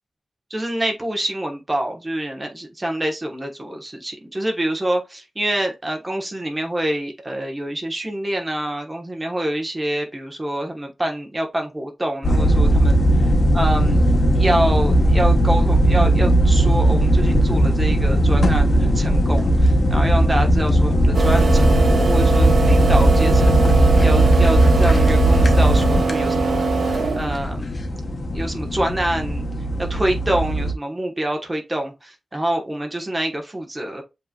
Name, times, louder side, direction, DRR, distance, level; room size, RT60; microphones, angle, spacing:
voice 1, 0.5-13.0 13.5-14.0 14.3-26.7 27.1-27.7 28.3-29.4 29.9-34.0, right 1 dB, 20° right, 1.1 m, -26 dB
sound 1, 12.2-30.7, right 1 dB, 40° left, 0.8 m, -17 dB
sound 2, 21.1-27.5, right 4 dB, 70° right, 0.8 m, -22 dB
7.5 x 2.9 x 2.3 m
wide cardioid pair, 130°, 0 cm